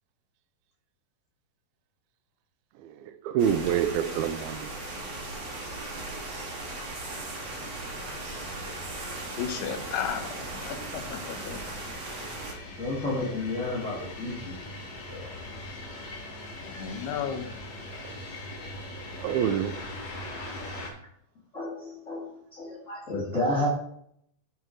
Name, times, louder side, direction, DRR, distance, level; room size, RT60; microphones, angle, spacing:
voice 1, 2.8-4.8 18.0-18.2 19.2-19.8, right 9 dB, 80° right, 2.3 m, -27 dB
sound 1, 3.4-12.5, right 2 dB, 55° right, 1.2 m, -38 dB
sound 2, 4.1-20.9, left 1 dB, 50° left, 2.0 m, -43 dB
voice 2, 9.4-11.6 16.6-17.5, left 8 dB, 80° left, 2.9 m, -34 dB
voice 3, 12.8-14.7 15.1-15.3 21.5-23.7, left 1 dB, 35° left, 1.3 m, -31 dB
12.5 x 4.5 x 3.8 m
omnidirectional pair, 4.6 m